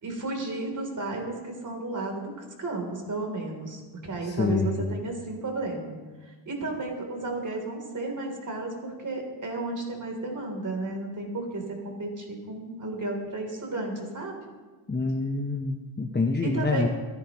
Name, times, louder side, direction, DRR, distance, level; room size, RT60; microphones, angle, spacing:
voice 1, 0.0-2.3 2.6-5.9 6.2-14.4 16.4-16.9, right 2 dB, 40° right, 2 dB, 3.5 m, -33 dB
voice 2, 4.2-4.9 14.9-16.9, left 3 dB, 20° left, 2 dB, 0.9 m, -26 dB
25.0 x 10.5 x 3.1 m, 1.3 s
cardioid pair, 100°, 47 cm